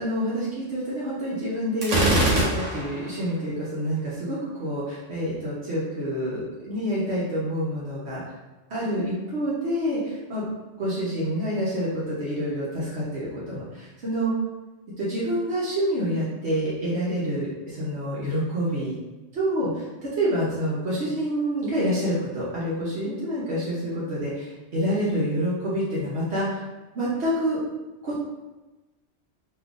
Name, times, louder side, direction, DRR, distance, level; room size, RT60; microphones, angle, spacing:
voice 1, 0.0-8.2 8.7-10.4 10.8-14.3 15.0-18.9 19.3-26.6 26.9-27.6 28.0-28.2, equal, 65° right, -8 dB, 1.0 m, -27 dB
Gunshot gunfire, 1.8-3.1, right 1 dB, 85° right, 1.2 m, -22 dB
3.6 x 2.7 x 2.4 m, 1.1 s
omnidirectional pair, 1.3 m